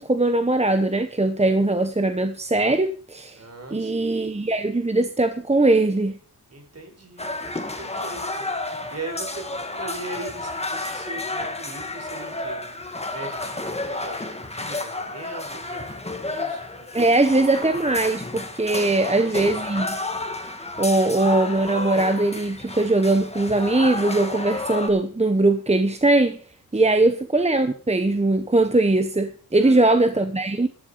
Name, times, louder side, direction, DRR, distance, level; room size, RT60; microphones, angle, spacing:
voice 1, 0.0-3.4 3.7-6.2 16.9-20.0 20.8-26.4 26.7-30.7, right 2 dB, 20° right, 1.1 m, -20 dB
voice 2, 3.3-4.3 6.5-17.1 19.0-19.6 26.7-27.1 29.6-30.3, right 3 dB, 45° right, 4.7 m, -40 dB
sound 1, 7.2-24.9, left 2 dB, 15° left, 2.0 m, -31 dB
13.5 x 11.5 x 5.2 m
wide cardioid pair, 80°, 36 cm